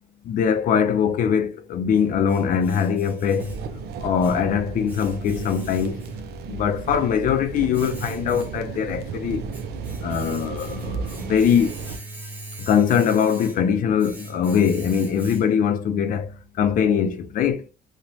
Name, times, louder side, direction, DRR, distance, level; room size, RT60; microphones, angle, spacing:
voice 1, 0.2-3.6 4.0-6.1 6.5-9.4 10.0-11.8 12.6-17.6, left 7 dB, 55° left, 0.4 m, -22 dB
Domestic sounds home sounds, 1.4-15.8, right 1 dB, 10° right, 0.7 m, -40 dB
sound 1, 3.4-12.0, right 5 dB, 75° right, 0.4 m, -34 dB
3.0 x 2.1 x 2.7 m
cardioid pair, 110°, 17 cm